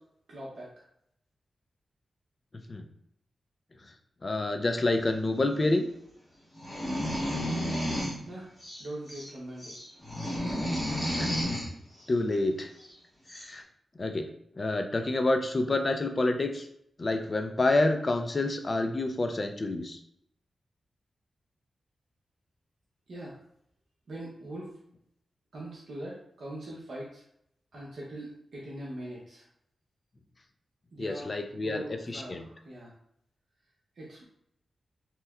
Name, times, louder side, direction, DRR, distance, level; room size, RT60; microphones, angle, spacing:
voice 1, 0.3-0.7 8.3-8.5 8.8-9.8 23.1-23.4 24.1-24.7 25.5-27.2 27.7-29.4 30.9-31.3 31.6-32.9 34.0-34.2, right 1 dB, 65° right, -5 dB, 0.7 m, -41 dB
voice 2, 4.2-5.8 11.2-11.3 12.1-12.7 13.3-13.6 14.0-14.3 14.6-16.7 17.0-20.0 31.0-32.5, left 2 dB, 30° left, 6 dB, 0.3 m, -28 dB
sound 1, 6.5-8.2 8.6-9.3 9.6-11.7 12.8-12.9 13.3-13.5, equal, 10° left, 1.3 m, -32 dB
3.2 x 2.9 x 2.3 m, 0.73 s
wide cardioid pair, 150°, 0 cm